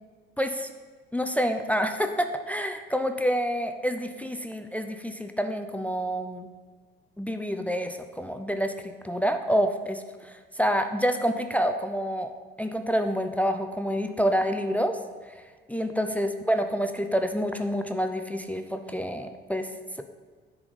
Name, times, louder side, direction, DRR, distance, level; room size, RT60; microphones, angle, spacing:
voice 1, 0.4-0.7 1.1-6.5 7.2-8.7 9.0-12.3 12.6-15.0 15.3-15.4 15.7-19.7, equal, 5° left, 7 dB, 0.5 m, -28 dB
10.5 x 4.4 x 4.0 m, 1.5 s
figure-of-eight pair, 55°, 29 cm